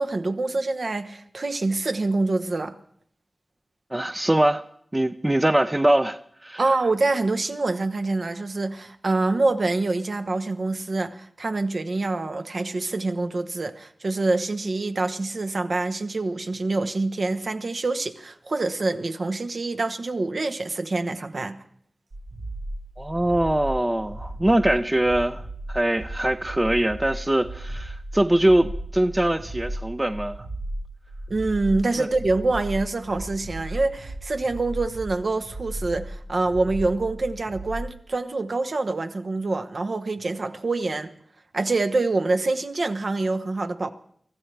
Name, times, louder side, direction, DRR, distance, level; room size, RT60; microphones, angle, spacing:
voice 1, 0.0-2.7 6.6-21.6 31.3-41.1 41.5-43.9, right 3 dB, 65° right, 1.0 m, -26 dB
voice 2, 3.9-4.6 4.9-6.6 23.0-30.5 32.0-32.1, right 1 dB, 20° right, 0.6 m, -22 dB
sound 1, 22.1-37.9, right 1 dB, 85° right, 1.6 m, -36 dB
23.5 x 14.0 x 3.4 m
wide cardioid pair, 65°, 0 cm